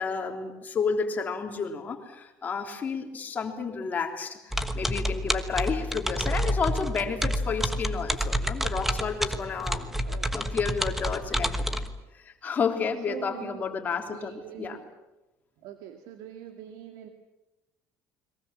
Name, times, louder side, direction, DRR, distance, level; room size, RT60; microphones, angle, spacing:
voice 1, 0.0-9.9 10.3-11.8 12.1-14.8, left 5 dB, 25° left, 3 dB, 3.4 m, -31 dB
sound 1, 4.5-11.9, equal, 5° right, 1.3 m, -29 dB
voice 2, 10.0-10.4 13.1-13.6 14.1-14.9 15.6-17.1, right 9 dB, 75° right, 7 dB, 2.2 m, -43 dB
30.0 x 22.5 x 7.4 m, 1.0 s
cardioid pair, 155°, 6 cm